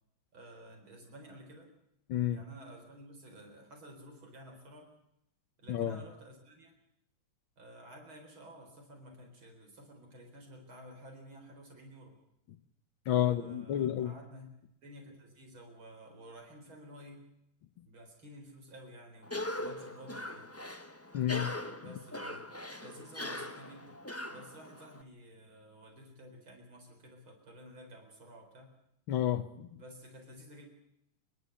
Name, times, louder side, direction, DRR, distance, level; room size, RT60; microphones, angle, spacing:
voice 1, 0.3-1.7 2.3-4.9 5.6-6.7 7.6-12.2 13.1-14.5 14.8-17.3 17.8-20.5 21.8-22.5 22.8-24.0 24.3-28.7 29.7-30.7, equal, 85° right, 3 dB, 5.1 m, -52 dB
voice 2, 13.1-14.1 21.1-21.5 29.1-29.7, left 11 dB, 80° left, 11 dB, 1.8 m, -30 dB
Cough, 19.2-25.0, left 1 dB, 10° left, 0.8 m, -41 dB
29.5 x 11.5 x 8.5 m, 0.80 s
omnidirectional pair, 2.2 m